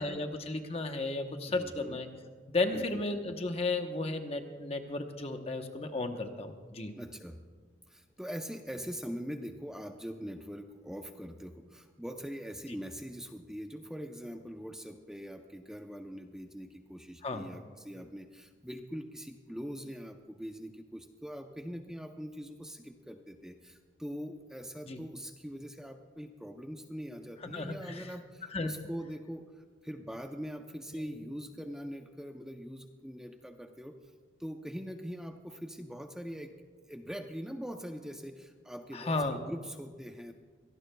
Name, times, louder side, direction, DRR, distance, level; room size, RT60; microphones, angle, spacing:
voice 1, 0.0-2.1 2.5-6.9 17.2-17.5 24.9-25.0 27.4-28.1 28.5-28.7 31.1-31.2 38.9-39.4, left 2 dB, 30° left, 5 dB, 0.9 m, -34 dB
voice 2, 1.5-2.0 2.7-2.9 6.9-7.4 7.9-34.0 34.4-36.6 36.9-40.3, equal, 5° right, 5 dB, 0.5 m, -42 dB
23.5 x 18.0 x 2.3 m, 1.5 s
head